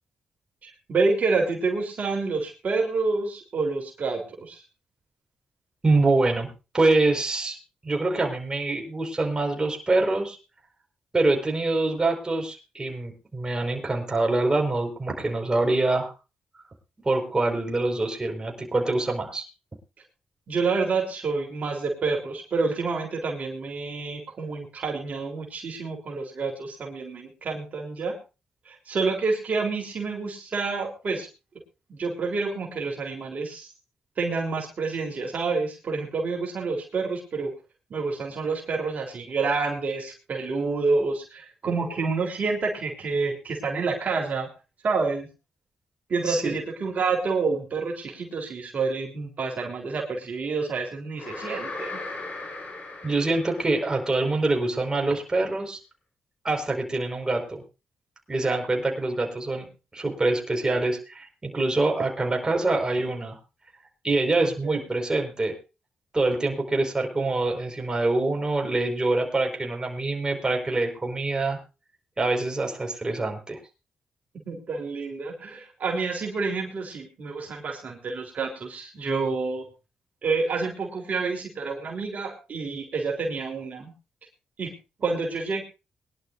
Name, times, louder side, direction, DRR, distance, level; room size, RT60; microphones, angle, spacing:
voice 1, 0.6-4.6 20.5-28.2 28.7-31.3 31.9-33.7 34.2-37.5 37.9-44.5 44.8-45.3 46.1-52.0 64.4-64.8 74.5-79.7 80.2-83.9 84.6-84.7 85.0-85.6, right 4 dB, 60° right, 1 dB, 3.8 m, -28 dB
voice 2, 5.8-6.5 6.7-7.6 7.8-10.4 11.1-16.1 17.0-19.4 46.3-46.5 53.0-55.8 56.4-57.6 58.3-59.7 59.9-63.4 64.0-65.5 66.1-71.6 72.2-73.6, right 2 dB, 25° right, 2 dB, 5.2 m, -25 dB
sound 1, 51.2-54.3, left 2 dB, 55° left, 6.6 m, -38 dB
23.0 x 11.5 x 2.7 m, 0.29 s
supercardioid pair, 55°, 3 cm